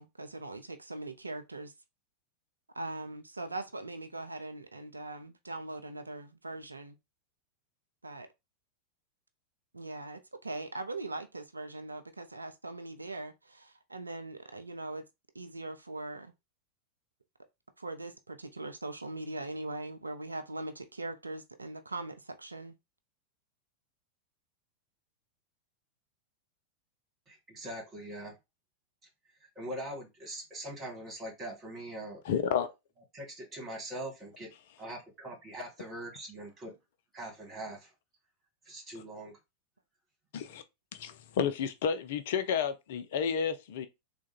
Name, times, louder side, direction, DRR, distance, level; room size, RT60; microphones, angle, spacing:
voice 1, 0.0-1.7 2.7-7.0 8.0-8.3 9.7-15.0 15.3-16.3 17.8-22.8, right 2 dB, 80° right, 0.4 m, -41 dB
voice 2, 27.3-28.3 29.4-32.2 33.1-34.5 34.8-36.7 37.1-37.9 38.7-39.4, right 1 dB, 20° right, 2.0 m, -42 dB
voice 3, 32.2-32.7 38.9-39.0 40.3-40.6 40.9-43.9, left 7 dB, 55° left, 0.5 m, -31 dB
3.5 x 2.2 x 4.3 m
figure-of-eight pair, 90°, 0 cm